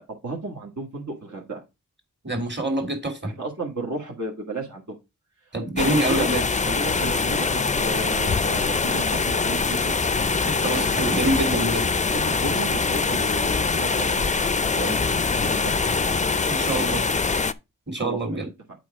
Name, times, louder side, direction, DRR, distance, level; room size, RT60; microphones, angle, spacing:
voice 1, 0.0-1.6 3.2-5.0 5.8-6.3 6.6-7.5 7.8-9.9 10.6-11.2 12.1-15.9 18.0-18.4, right 3 dB, 60° right, -1 dB, 1.9 m, -33 dB
voice 2, 2.2-3.3 5.5-6.5 7.5-7.7 10.6-11.9 16.5-17.1 17.9-18.5, right 1 dB, 35° right, 3 dB, 2.6 m, -26 dB
sound 1, 5.8-17.5, left 4 dB, 20° left, 0.5 m, -23 dB
7.7 x 4.8 x 4.7 m, 0.24 s
wide cardioid pair, 70°, 33 cm